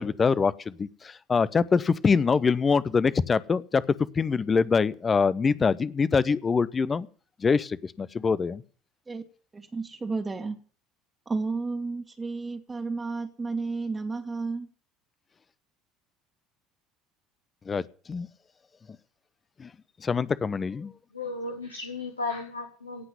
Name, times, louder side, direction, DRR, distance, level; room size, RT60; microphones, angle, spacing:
voice 1, 0.0-3.8 4.1-7.1 7.4-8.6 17.7-18.3 19.6-19.7 20.0-20.9, left 5 dB, 25° left, 19 dB, 0.8 m, -24 dB
voice 2, 9.5-10.6 11.2-14.7, right 3 dB, 20° right, 4 dB, 1.8 m, -32 dB
voice 3, 21.1-23.0, left 3 dB, 85° left, 4 dB, 1.7 m, -34 dB
17.5 x 5.9 x 9.6 m, 0.43 s
figure-of-eight pair, 60°, 0 cm